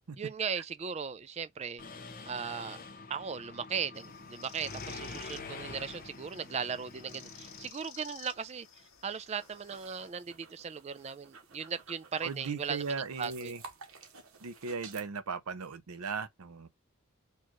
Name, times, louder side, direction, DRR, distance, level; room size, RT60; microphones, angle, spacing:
voice 1, 0.2-1.8 2.3-2.8 3.1-8.7 9.0-12.9 13.2-13.5, right 6 dB, 30° right, 0.3 m, -37 dB
Mechanisms, 1.8-7.7, left 3 dB, 40° left, 0.6 m, -46 dB
sound 1, 3.9-10.1, left 7 dB, 70° left, 1.0 m, -53 dB
sound 2, 9.3-15.1, right 5 dB, 70° right, 1.0 m, -53 dB
voice 2, 12.2-13.6 14.4-16.7, right 5 dB, 85° right, 0.6 m, -37 dB
4.4 x 2.4 x 3.0 m
head